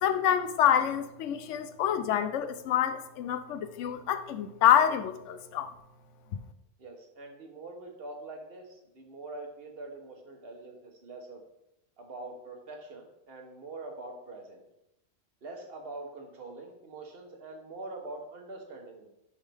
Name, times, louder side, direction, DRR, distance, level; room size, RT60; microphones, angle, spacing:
voice 1, 0.0-5.7 6.3-6.4, left 10 dB, 75° left, 11 dB, 0.9 m, -27 dB
voice 2, 6.8-11.4 12.0-14.7 15.4-19.1, right 2 dB, 50° right, 2 dB, 1.3 m, -44 dB
9.7 x 3.6 x 3.4 m, 0.83 s
omnidirectional pair, 1.3 m